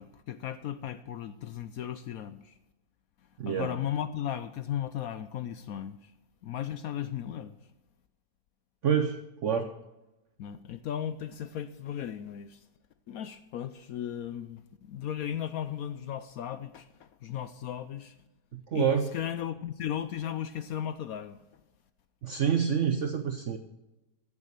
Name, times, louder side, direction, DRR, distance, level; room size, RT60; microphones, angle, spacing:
voice 1, 0.0-2.5 3.5-6.1 6.4-7.6 10.4-12.6 13.1-18.2 18.7-21.4, left 10 dB, 70° left, 1.0 m, -36 dB
voice 2, 3.4-3.7 8.8-9.7 18.5-19.1 22.2-23.6, right 7 dB, 55° right, 0.9 m, -27 dB
14.5 x 7.2 x 6.8 m
omnidirectional pair, 1.7 m